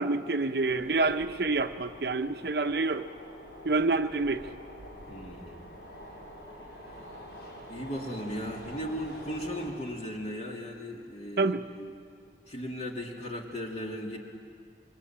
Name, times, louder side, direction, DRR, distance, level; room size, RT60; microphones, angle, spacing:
voice 1, 0.0-3.1 3.6-4.4 11.4-11.6, right 3 dB, 65° right, 8 dB, 0.8 m, -27 dB
sound 1, 0.7-9.7, equal, 75° left, 5.8 m, -46 dB
voice 2, 5.1-5.7 7.7-11.9 12.5-14.2, equal, 35° left, 0 dB, 2.9 m, -37 dB
26.5 x 24.0 x 8.9 m, 2.4 s
head